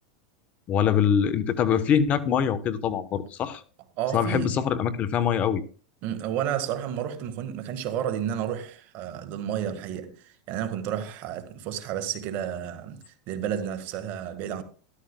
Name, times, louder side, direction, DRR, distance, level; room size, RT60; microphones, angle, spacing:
voice 1, 0.7-3.6 4.1-5.6, left 8 dB, 40° left, 1.0 m, -24 dB
voice 2, 4.0-4.6 6.0-14.6, right 9 dB, 50° right, 1.7 m, -31 dB
13.0 x 13.0 x 2.3 m
hypercardioid pair, 110°, 4 cm